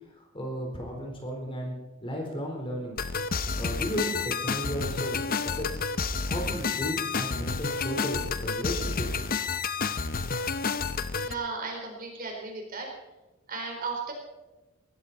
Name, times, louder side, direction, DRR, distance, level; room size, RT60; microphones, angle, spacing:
voice 1, 0.2-1.7 2.0-3.0 3.5-5.8 6.2-9.1, equal, 25° left, 1 dB, 4.2 m, -34 dB
sound 1, 3.0-11.3, left 5 dB, 45° left, 0.8 m, -30 dB
voice 2, 11.2-12.9 13.5-14.1, right 4 dB, 45° right, 1 dB, 4.2 m, -35 dB
19.5 x 14.5 x 4.3 m, 1.1 s
head